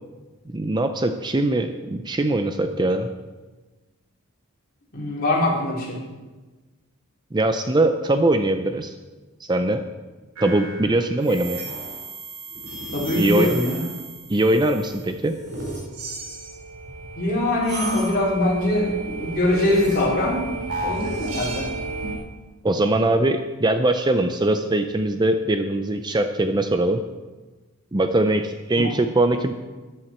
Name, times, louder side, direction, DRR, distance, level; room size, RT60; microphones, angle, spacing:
voice 1, 0.5-3.1 7.3-8.9 9.5-9.8 10.4-11.6 13.1-13.5 14.3-15.4 22.6-27.0 27.9-29.5, right 2 dB, 20° right, 7 dB, 0.5 m, -21 dB
voice 2, 4.9-6.0 12.9-13.8 17.2-20.5 20.8-21.7 28.7-28.9, left 1 dB, 45° left, -4 dB, 3.7 m, -23 dB
sound 1, 10.4-22.2, right 2 dB, 85° right, 4.5 m, -33 dB
13.5 x 11.0 x 4.4 m, 1.2 s
head